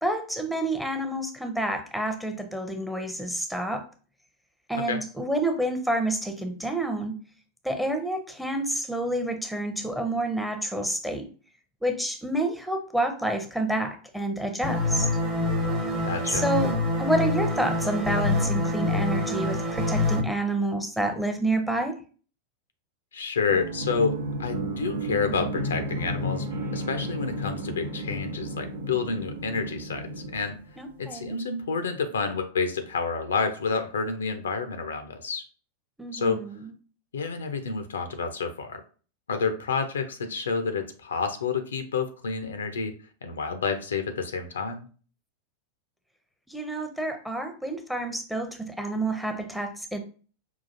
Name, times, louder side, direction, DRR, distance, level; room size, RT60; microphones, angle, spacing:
voice 1, 0.0-3.8 4.7-7.2 7.6-11.3 11.8-15.1 16.3-16.7 17.0-21.9 30.8-31.3 36.0-36.6 46.5-50.0, right 1 dB, ahead, 5 dB, 0.7 m, -28 dB
sound 1, 14.6-20.2, left 2 dB, 35° right, 1.0 m, -26 dB
voice 2, 16.0-16.4 23.1-26.5 26.7-30.6 31.0-35.4 36.1-36.5 37.1-38.8 39.3-42.9 43.2-44.9, left 5 dB, 70° left, 8 dB, 0.5 m, -29 dB
sound 2, 23.4-31.0, right 1 dB, 75° right, 0.8 m, -33 dB
5.6 x 2.4 x 2.6 m, 0.39 s
figure-of-eight pair, 90°, 0 cm